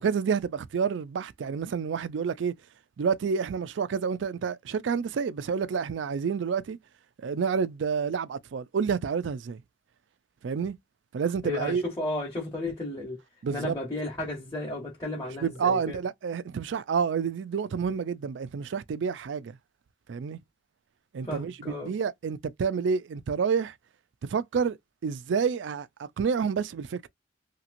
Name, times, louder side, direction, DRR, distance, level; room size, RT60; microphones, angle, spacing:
voice 1, 0.0-2.5 3.0-6.8 7.2-9.6 10.4-10.8 11.1-11.8 13.4-13.8 15.4-19.6 20.1-20.4 21.1-23.7 24.2-24.8 25.0-27.1, right 6 dB, 75° right, 0.4 m, -29 dB
voice 2, 11.4-13.2 13.5-16.0 21.2-21.9, left 2 dB, 20° left, 1.0 m, -33 dB
2.9 x 2.8 x 2.5 m
head